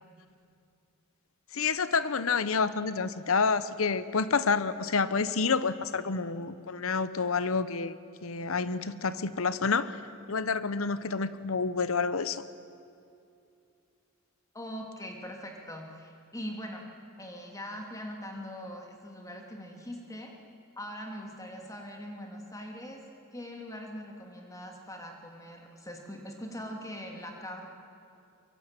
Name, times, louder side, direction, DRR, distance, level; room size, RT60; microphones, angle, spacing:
voice 1, 1.5-8.0 8.2-10.0 10.3-12.4, left 5 dB, 65° left, 14 dB, 0.9 m, -28 dB
voice 2, 14.5-16.9 17.2-20.3 20.8-23.0 23.3-27.7, equal, 15° left, 2 dB, 2.9 m, -41 dB
23.0 x 23.0 x 9.1 m, 2.5 s
head